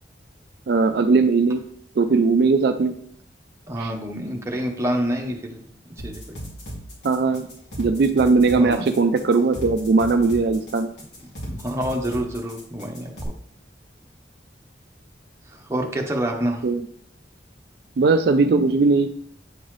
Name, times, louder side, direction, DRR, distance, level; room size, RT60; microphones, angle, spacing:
voice 1, 0.7-1.6 2.0-2.9 3.8-3.9 7.0-7.5 7.8-10.9 16.6-16.8 18.0-19.1, right 4 dB, 65° right, 7 dB, 0.4 m, -19 dB
voice 2, 3.7-5.6 6.0-6.4 8.5-8.9 11.5-13.3 15.5-16.6, right 1 dB, 15° right, 0 dB, 0.9 m, -27 dB
sound 1, 6.0-13.2, equal, 85° left, 2.4 m, -36 dB
8.7 x 4.0 x 3.2 m, 0.65 s
head